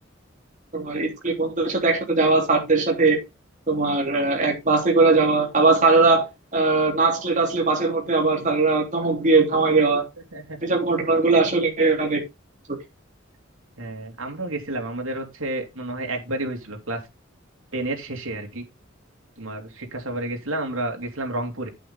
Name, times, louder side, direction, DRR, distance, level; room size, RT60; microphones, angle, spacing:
voice 1, 0.7-3.2 3.7-6.2 6.5-10.0 10.6-12.2, right 3 dB, 40° right, 3.2 m, -20 dB
voice 2, 13.8-17.0 17.7-18.6 19.4-21.7, right 1 dB, 85° right, 3.0 m, -30 dB
8.7 x 8.6 x 3.7 m
head